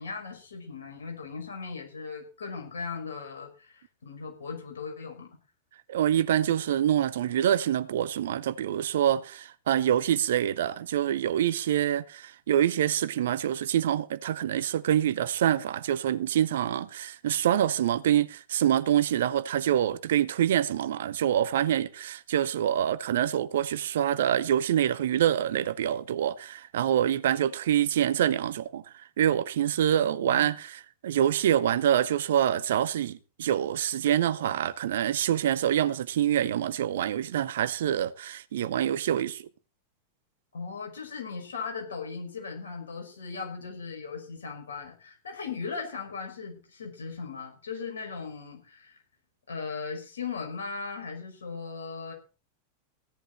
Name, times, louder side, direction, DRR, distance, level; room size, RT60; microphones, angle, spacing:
voice 1, 0.0-5.3 30.0-30.5 40.5-49.0 49.5-52.1, left 5 dB, 65° left, 5.8 m, -38 dB
voice 2, 5.9-28.8 29.2-39.4, right 10 dB, 60° right, 0.8 m, -26 dB
16.5 x 11.0 x 4.2 m
figure-of-eight pair, 90°, 0 cm